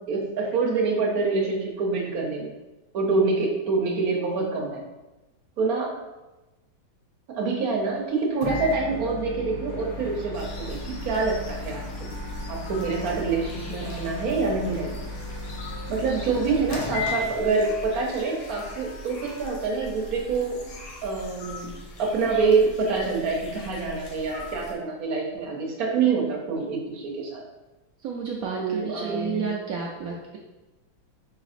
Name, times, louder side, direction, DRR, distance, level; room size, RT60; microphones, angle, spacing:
voice 1, 0.1-2.5 2.9-4.8 5.6-5.9 7.3-12.1 12.5-15.0 15.9-20.6 21.0-21.7 22.0-27.4 28.6-29.5, right 4 dB, 60° right, 0 dB, 1.1 m, -26 dB
Microwave oven, 8.4-17.8, left 2 dB, 60° left, 1.0 m, -35 dB
sound 1, 10.3-24.7, left 2 dB, 85° left, 1.7 m, -42 dB
sound 2, 11.4-21.0, equal, 10° right, 1.1 m, -48 dB
voice 2, 28.0-30.4, right 5 dB, 85° right, -2 dB, 0.7 m, -31 dB
4.9 x 3.9 x 2.5 m, 1.1 s
omnidirectional pair, 2.1 m